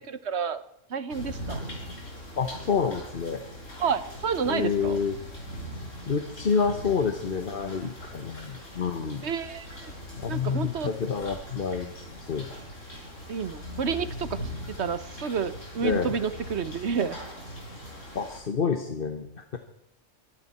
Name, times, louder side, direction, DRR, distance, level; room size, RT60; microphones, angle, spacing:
voice 1, 0.1-0.6 0.9-1.6 3.8-5.0 9.2-9.9 10.3-10.9 13.3-17.2, right 6 dB, 60° right, 13 dB, 1.3 m, -30 dB
sound 1, 1.1-18.4, equal, 90° left, 5.8 m, -41 dB
voice 2, 2.4-3.4 4.4-5.2 6.1-9.3 10.2-12.5 15.8-16.2 18.1-19.6, left 6 dB, 50° left, 7 dB, 1.3 m, -28 dB
24.0 x 12.0 x 4.3 m, 0.79 s
omnidirectional pair, 1.3 m